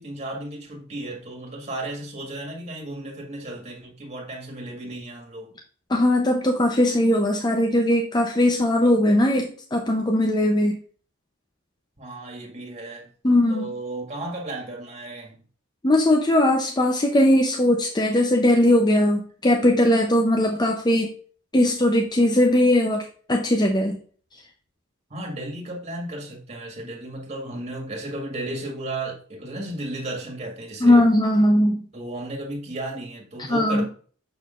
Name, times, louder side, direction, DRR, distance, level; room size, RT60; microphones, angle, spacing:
voice 1, 0.0-5.5 12.0-13.1 13.5-15.4 25.1-31.0 31.9-33.9, right 1 dB, 30° right, 1.9 m, -34 dB
voice 2, 5.9-10.8 13.2-13.7 15.8-21.1 21.5-24.0 30.8-31.8 33.5-33.9, left 1 dB, 20° left, 0.7 m, -19 dB
6.6 x 6.2 x 2.5 m
head